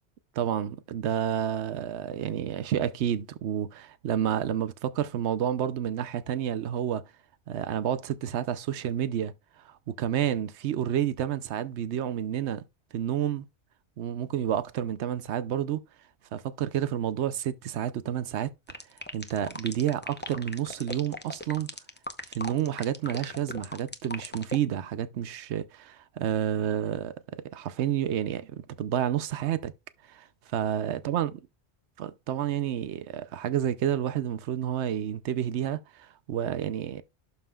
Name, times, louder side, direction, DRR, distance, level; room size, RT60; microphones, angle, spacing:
voice 1, 0.4-7.0 7.5-9.3 9.6-12.6 12.9-13.4 14.0-15.8 16.3-18.5 19.1-21.7 22.3-27.1 27.5-29.7 30.1-30.3 30.5-31.3 32.0-37.0, right 10 dB, 85° right, 1.0 m, -30 dB
sound 1, 18.7-24.6, left 1 dB, 10° left, 0.7 m, -37 dB
12.0 x 5.6 x 2.4 m
omnidirectional pair, 1.1 m